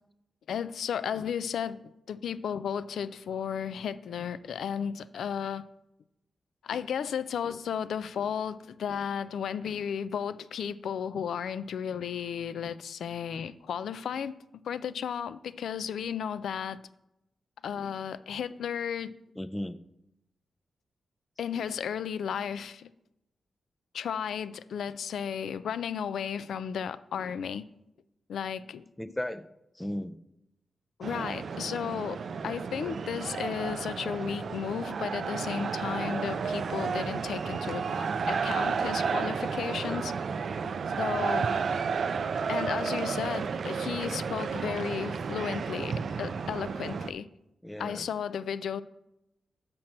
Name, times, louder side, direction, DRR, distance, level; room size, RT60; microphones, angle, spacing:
voice 1, 0.5-1.8 2.1-5.6 6.6-14.4 14.6-16.8 17.6-19.1 21.4-22.9 23.9-27.6 28.3-29.1 31.0-40.1 40.6-41.5 42.5-47.3 47.8-48.8, left 8 dB, 80° left, 15 dB, 0.3 m, -34 dB
voice 2, 19.4-19.8 29.0-29.5 29.8-30.2 32.8-32.9 39.7-40.0 47.6-48.1, left 1 dB, 10° left, 12 dB, 0.4 m, -36 dB
sound 1, 31.0-47.1, right 5 dB, 65° right, 0.3 m, -32 dB
5.9 x 4.3 x 6.4 m, 0.87 s
cardioid pair, 65°, 0 cm